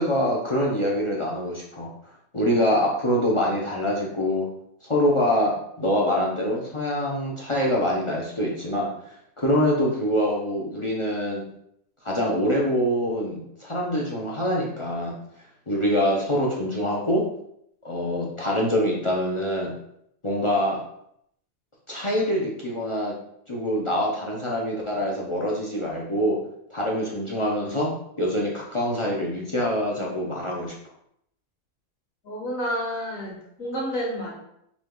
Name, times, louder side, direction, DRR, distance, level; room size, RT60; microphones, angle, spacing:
voice 1, 0.0-1.9 2.3-4.5 4.8-8.9 9.4-11.4 12.0-15.1 15.7-17.2 17.8-19.7 20.2-20.8 21.9-23.2 23.5-26.4 26.7-27.9 28.2-30.7, equal, 35° left, -4 dB, 0.5 m, -25 dB
voice 2, 32.2-34.3, equal, 70° left, -5 dB, 2.0 m, -30 dB
6.0 x 2.3 x 3.8 m, 0.74 s
omnidirectional pair, 1.5 m